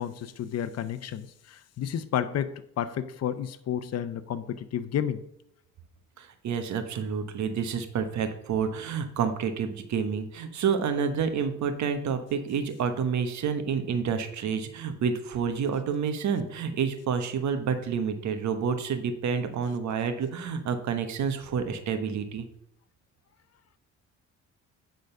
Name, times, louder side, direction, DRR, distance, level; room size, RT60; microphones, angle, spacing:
voice 1, 0.0-5.2, left 9 dB, 55° left, 11 dB, 0.7 m, -31 dB
voice 2, 6.2-22.5, right 6 dB, 70° right, 8 dB, 1.1 m, -29 dB
8.9 x 3.9 x 5.4 m, 0.77 s
cardioid pair, 90°, 30 cm